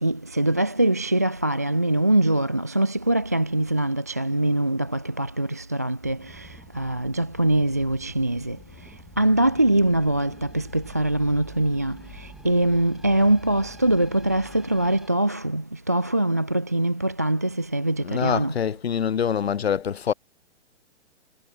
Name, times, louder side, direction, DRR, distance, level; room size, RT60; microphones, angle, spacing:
voice 1, 0.0-6.5 6.7-8.6 9.2-18.5, right 1 dB, 15° right, 0.3 m, -23 dB
sound 1, 6.0-15.1, right 1 dB, ahead, 3.4 m, -48 dB
voice 2, 18.0-20.1, left 8 dB, 65° left, 0.7 m, -25 dB
figure-of-eight pair, 125°, 34 cm